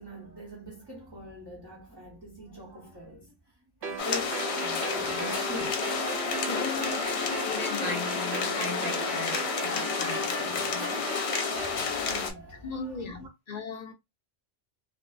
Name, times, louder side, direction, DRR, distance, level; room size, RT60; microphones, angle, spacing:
voice 1, 0.0-3.3 3.8-5.8 6.0-6.2 7.2-7.4 11.5-12.8 13.1-13.3, left 1 dB, 30° right, 0.6 m, -43 dB
sound 1, 3.8-11.8, right 4 dB, 75° right, 0.9 m, -36 dB
sound 2, 4.0-12.3, left 6 dB, 70° left, 0.8 m, -31 dB
voice 2, 6.4-11.9 12.6-13.9, left 4 dB, 50° left, 0.5 m, -38 dB
2.6 x 2.4 x 2.2 m
omnidirectional pair, 1.2 m